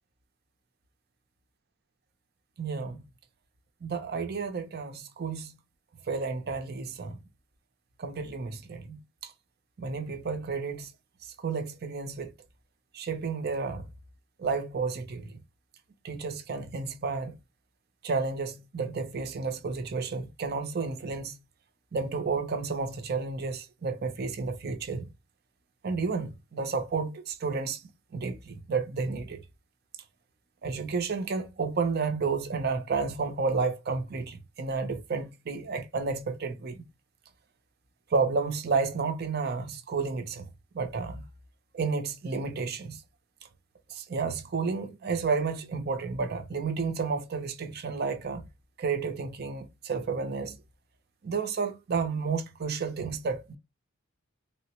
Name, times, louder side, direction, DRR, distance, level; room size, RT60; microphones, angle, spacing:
voice 1, 2.6-3.0 3.8-5.5 6.1-7.2 8.0-9.3 9.8-10.9 11.2-12.3 12.9-13.9 14.4-15.4 16.0-17.4 18.0-21.4 21.9-25.1 25.8-27.8 28.1-29.4 30.6-36.9 38.1-40.5 40.7-41.2 41.7-43.0 43.9-48.5 48.8-50.6 51.2-53.6, right 4 dB, 50° right, 0.5 m, -31 dB
3.6 x 2.0 x 2.8 m
head